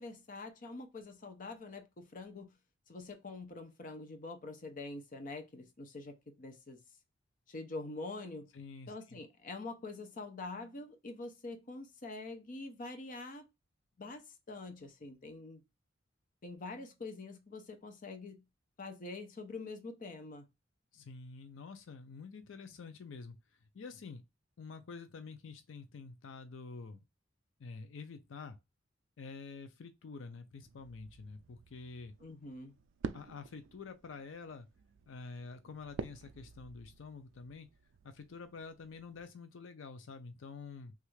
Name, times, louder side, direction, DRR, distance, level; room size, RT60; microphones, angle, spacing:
voice 1, 0.0-2.6 2.9-6.8 7.5-8.5 8.9-13.4 14.0-15.6 16.4-18.4 18.8-20.5 32.2-32.7, left 3 dB, 45° left, 0.6 m, -45 dB
voice 2, 8.5-9.2 20.9-23.4 23.7-24.2 24.6-27.0 27.6-28.6 29.2-32.1 33.1-34.7 35.1-37.7 38.0-40.9, left 4 dB, 90° left, 0.5 m, -48 dB
sound 1, 30.6-39.2, right 6 dB, 75° right, 0.3 m, -49 dB
3.2 x 2.4 x 3.1 m
head